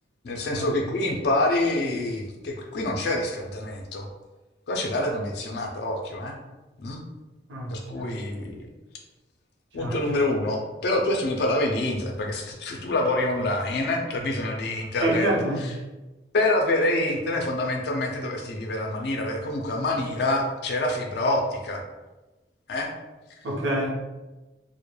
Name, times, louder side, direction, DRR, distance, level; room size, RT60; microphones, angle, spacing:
voice 1, 0.2-4.1 4.7-6.4 6.8-7.0 7.7-8.5 9.7-15.3 15.6-15.7 16.3-21.8 22.7-22.9, left 1 dB, 60° left, 1 dB, 0.4 m, -26 dB
voice 2, 7.5-8.1 9.8-10.0 15.0-15.6 23.4-23.9, right 1 dB, 75° right, -1 dB, 0.6 m, -27 dB
2.2 x 2.0 x 3.0 m, 1.1 s
head